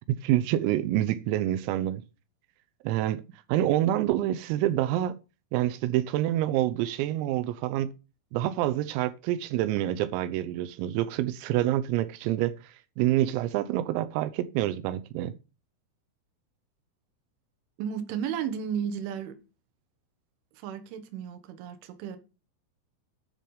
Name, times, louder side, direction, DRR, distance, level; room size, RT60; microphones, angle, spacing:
voice 1, 0.1-2.0 2.8-3.2 3.5-5.2 5.5-7.9 8.3-15.4, right 13 dB, 90° right, 3.5 m, -27 dB
voice 2, 17.8-19.4 20.5-22.2, right 8 dB, 75° right, 3.6 m, -33 dB
10.0 x 7.4 x 5.4 m
omnidirectional pair, 5.9 m